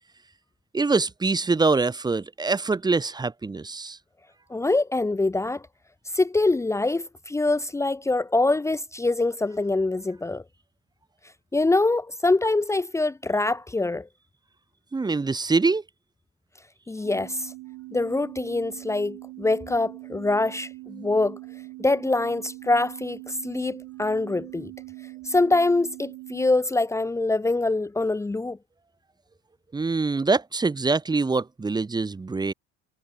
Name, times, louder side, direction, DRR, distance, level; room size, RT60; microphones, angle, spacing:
voice 1, 0.7-4.0 14.9-15.8 29.7-32.5, right 3 dB, 15° right, 1.6 m, -24 dB
voice 2, 4.5-5.6 6.1-10.4 11.5-14.1 16.9-17.5 17.9-21.4 21.8-24.7 25.2-28.6, left 2 dB, 10° left, 1.3 m, -24 dB
sound 1, 17.0-26.6, right 21 dB, 70° right, 6.5 m, -42 dB
cardioid pair, 150°, 30 cm